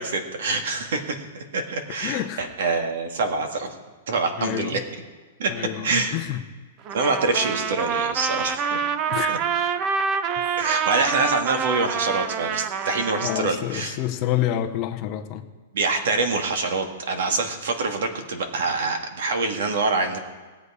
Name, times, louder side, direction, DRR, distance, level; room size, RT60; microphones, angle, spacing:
voice 1, 0.0-3.8 4.1-4.8 5.4-6.1 6.9-8.8 9.3-9.4 10.6-14.0 15.7-20.2, right 3 dB, 60° right, 5 dB, 1.8 m, -25 dB
voice 2, 2.0-2.4 4.4-4.8 5.5-6.4 9.1-9.3 13.2-15.5, left 12 dB, 25° left, 6 dB, 0.7 m, -28 dB
Trumpet, 6.9-13.4, right 6 dB, 25° right, 0.5 m, -26 dB
18.0 x 8.2 x 4.9 m, 1.4 s
hypercardioid pair, 175°, 0 cm